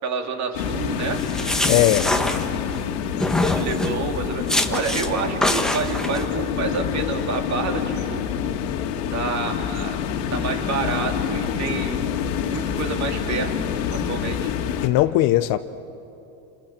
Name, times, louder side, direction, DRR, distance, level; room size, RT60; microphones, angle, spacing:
voice 1, 0.0-1.2 3.4-8.2 9.1-10.0 10.3-12.0 12.4-13.5 13.9-14.5, right 5 dB, 35° right, 3 dB, 2.9 m, -28 dB
sound 1, 0.5-14.9, left 8 dB, 80° left, 2.4 m, -27 dB
sound 2, 1.2-2.8 3.2-4.0 4.5-5.1 5.4-6.2, left 1 dB, ahead, 1.3 m, -24 dB
voice 2, 1.7-2.1 14.8-15.6, left 16 dB, 45° left, 13 dB, 0.7 m, -18 dB
29.0 x 27.5 x 7.5 m, 2.9 s
supercardioid pair, 145°, 49 cm